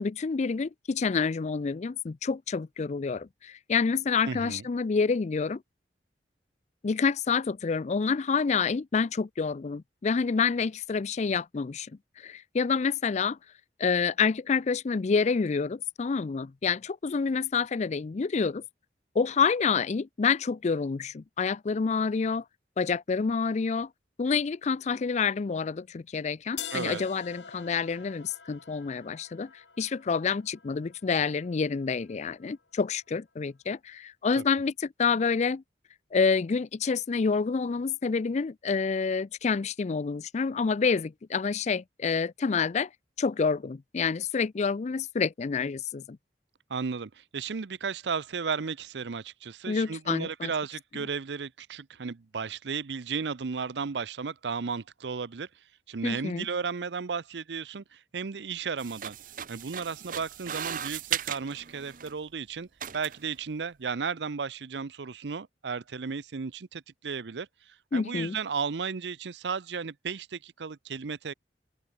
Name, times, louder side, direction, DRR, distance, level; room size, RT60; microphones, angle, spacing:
voice 1, 0.0-5.6 6.8-11.9 12.2-13.4 13.8-18.6 19.1-22.4 22.8-23.9 24.2-35.6 36.1-42.9 43.2-46.2 49.7-50.5 56.0-56.5 67.9-68.4, left 5 dB, 40° left, 0.4 m, -28 dB
voice 2, 4.2-4.6 26.7-27.0 34.4-34.5 46.7-55.5 55.9-59.2 59.5-62.7 62.9-71.3, right 5 dB, 80° right, 0.6 m, -34 dB
sound 1, 26.6-32.5, left 8 dB, 85° left, 4.0 m, -46 dB
sound 2, 58.8-62.2 62.8-63.3, right 9 dB, 50° right, 0.9 m, -37 dB
open air
head